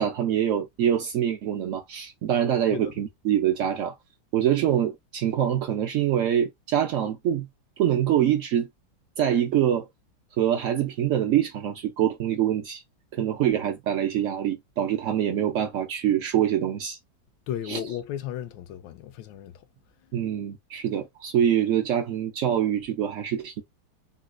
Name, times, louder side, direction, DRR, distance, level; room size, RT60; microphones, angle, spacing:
voice 1, 0.0-4.0 4.3-7.5 7.8-8.7 9.2-9.9 10.4-12.8 13.1-17.0 17.7-17.8 20.1-23.6, right 10 dB, 85° right, 0.6 m, -25 dB
voice 2, 17.5-19.6, left 10 dB, 80° left, 1.3 m, -34 dB
3.9 x 2.5 x 2.2 m
omnidirectional pair, 2.0 m